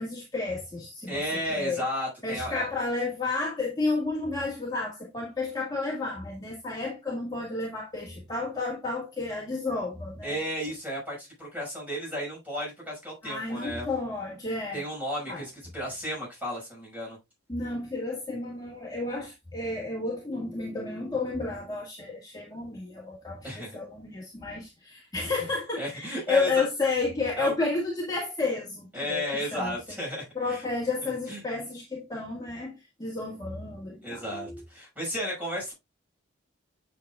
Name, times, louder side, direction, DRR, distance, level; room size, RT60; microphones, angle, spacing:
voice 1, 0.0-1.8 2.2-10.4 13.2-14.8 15.3-15.4 17.5-29.7 30.4-34.6, left 3 dB, 20° left, 1.8 m, -31 dB
voice 2, 1.1-2.7 10.2-13.9 14.7-17.2 23.4-23.8 25.8-26.7 27.4-27.5 28.9-30.6 31.3-31.4 34.0-35.7, equal, 10° right, 5.6 m, -33 dB
9.0 x 6.7 x 2.4 m
head